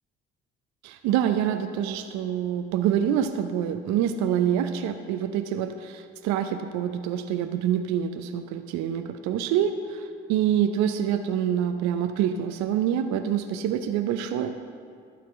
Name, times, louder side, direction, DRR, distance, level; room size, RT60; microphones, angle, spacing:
voice 1, 0.8-14.5, right 9 dB, 70° right, 8 dB, 0.6 m, -26 dB
12.5 x 4.2 x 7.7 m, 2.3 s
hypercardioid pair, 55°, 29 cm